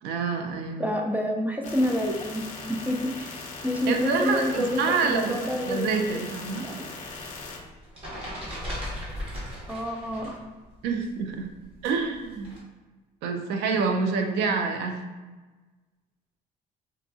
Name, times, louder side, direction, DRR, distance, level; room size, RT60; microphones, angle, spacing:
voice 1, 0.0-0.9 3.9-5.4 5.7-6.7 10.8-11.5 11.8-12.6 13.2-15.0, right 5 dB, 85° right, 5 dB, 0.4 m, -27 dB
voice 2, 0.8-2.5 2.9-3.4 3.6-5.9 6.1-6.2 6.6-6.9 9.7-10.4, left 1 dB, 10° right, 2 dB, 0.4 m, -28 dB
sound 1, 1.6-7.6, left 3 dB, 45° left, 0.6 m, -39 dB
sound 2, 7.2-10.4 10.7-12.6, equal, 35° right, 1.1 m, -37 dB
3.8 x 2.3 x 2.6 m, 1.2 s
cardioid pair, 110°, 17 cm